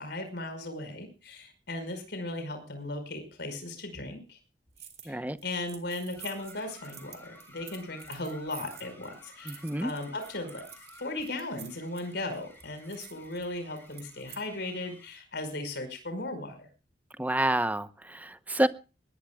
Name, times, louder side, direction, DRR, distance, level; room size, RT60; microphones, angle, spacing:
voice 1, 0.0-4.4 5.0-10.6 11.0-16.7, left 2 dB, 65° left, 5.2 m, -37 dB
sound 1, 4.8-5.1 5.4-14.4, right 9 dB, 35° right, 3.3 m, -50 dB
voice 2, 5.1-5.4 9.5-9.9 17.2-18.7, right 1 dB, 10° right, 0.8 m, -28 dB
sound 2, 6.2-15.2, left 2 dB, 10° left, 6.5 m, -54 dB
20.5 x 19.5 x 2.3 m
head